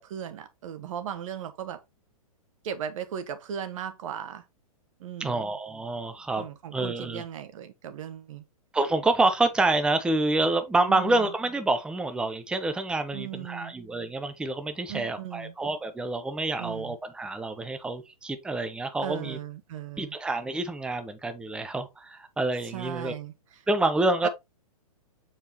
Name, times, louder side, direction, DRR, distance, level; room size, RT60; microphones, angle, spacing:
voice 1, 0.0-1.8 2.6-4.4 5.0-5.4 6.4-8.4 10.9-11.3 13.1-13.7 14.9-15.5 16.6-17.0 19.0-20.2 22.6-23.6 24.2-24.3, right 9 dB, 60° right, 1.2 m, -37 dB
voice 2, 5.2-6.5 6.7-7.2 8.7-19.4 20.0-23.1 23.7-24.3, right 2 dB, 5° right, 0.7 m, -27 dB
6.8 x 4.8 x 2.9 m
hypercardioid pair, 125°, 19 cm